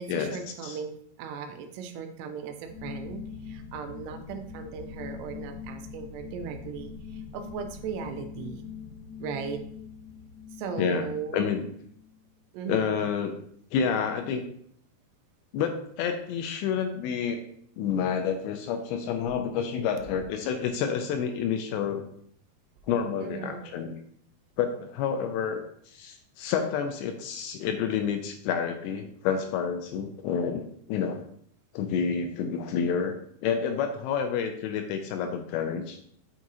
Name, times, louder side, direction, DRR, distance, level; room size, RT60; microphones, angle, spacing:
voice 1, 0.0-8.6 9.2-9.6 10.6-11.4 12.5-12.9 23.2-23.8, right 6 dB, 80° right, 6 dB, 2.6 m, -37 dB
sound 1, 2.6-12.1, left 6 dB, 30° left, 1.4 m, -42 dB
voice 2, 10.8-11.1 11.3-11.7 12.7-13.4 13.7-14.5 15.5-17.4 17.8-22.1 22.9-24.0 24.6-31.2 31.7-36.0, left 7 dB, 85° left, 5 dB, 2.8 m, -29 dB
7.3 x 6.2 x 2.7 m, 0.64 s
omnidirectional pair, 5.1 m